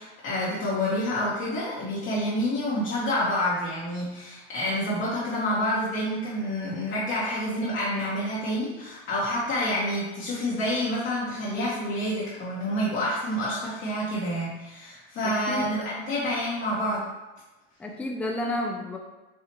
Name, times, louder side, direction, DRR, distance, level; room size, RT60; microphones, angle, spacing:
voice 1, 0.0-17.0, left 1 dB, 35° left, -7 dB, 0.9 m, -28 dB
voice 2, 15.2-15.7 17.8-19.0, left 1 dB, 5° left, 1 dB, 0.3 m, -31 dB
4.4 x 2.4 x 2.9 m, 1.1 s
supercardioid pair, 110°, 34 cm